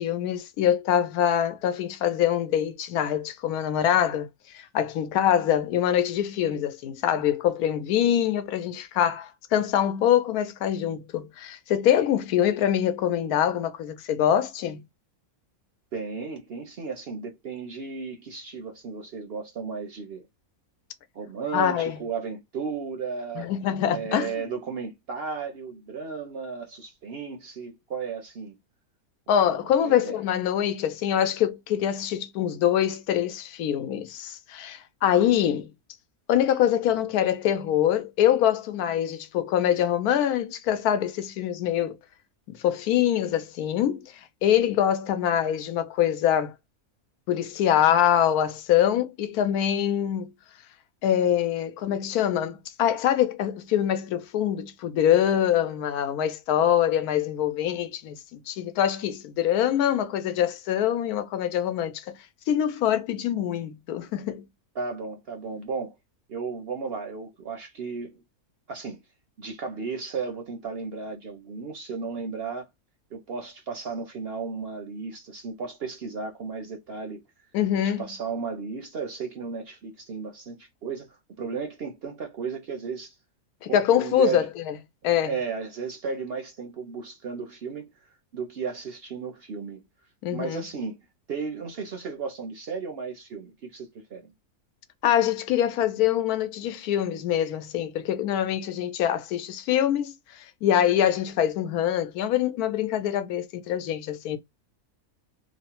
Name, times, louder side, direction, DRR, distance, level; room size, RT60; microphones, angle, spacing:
voice 1, 0.0-4.3 4.5-14.8 21.5-22.0 23.4-24.4 29.3-35.7 36.3-42.0 42.5-44.0 44.4-46.5 47.3-50.3 51.0-62.2 62.5-64.4 77.5-78.1 83.6-84.7 85.0-85.3 90.2-90.6 95.0-104.4, left 10 dB, 85° left, 1.1 m, -24 dB
voice 2, 15.9-20.3 21.1-23.5 23.9-28.6 29.4-30.2 64.8-66.0 66.3-68.2 68.7-69.0 69.4-72.7 73.1-77.2 77.8-83.1 83.6-84.5 85.2-89.8 90.3-91.0 91.3-94.3, right 5 dB, 60° right, 0.6 m, -34 dB
3.0 x 2.1 x 2.8 m
omnidirectional pair, 1.5 m